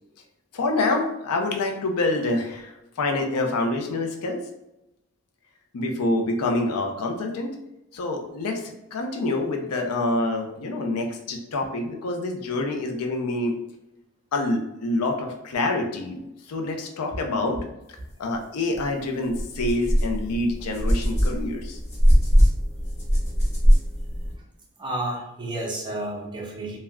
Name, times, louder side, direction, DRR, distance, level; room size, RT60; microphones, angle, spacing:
voice 1, 0.5-4.4 5.7-7.6 7.9-13.6 14.3-17.6 17.9-21.8, left 2 dB, 80° left, 3 dB, 0.5 m, -27 dB
sound 1, 18.7-18.8 19.3-24.3, equal, 30° left, 0.7 m, -21 dB
voice 2, 24.8-26.8, right 1 dB, 20° right, -2 dB, 0.5 m, -31 dB
3.5 x 2.1 x 2.2 m, 0.90 s
head